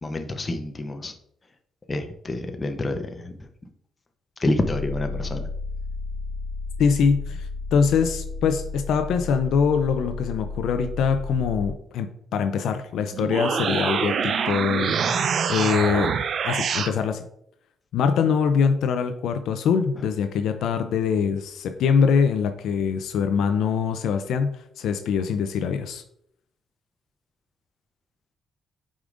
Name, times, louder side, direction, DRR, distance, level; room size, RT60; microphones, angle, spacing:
voice 1, 0.0-1.1 1.9-3.3 4.4-5.5, left 2 dB, 25° left, 6 dB, 0.8 m, -28 dB
sound 1, 4.6-11.7, left 3 dB, 80° right, 2.1 m, -33 dB
voice 2, 6.8-16.1 16.4-17.2 17.9-26.0, left 6 dB, 80° left, 8 dB, 0.5 m, -23 dB
sound 2, 13.1-16.9, right 6 dB, 60° right, 0.4 m, -25 dB
8.6 x 5.0 x 2.6 m, 0.70 s
cardioid pair, 90°, 0 cm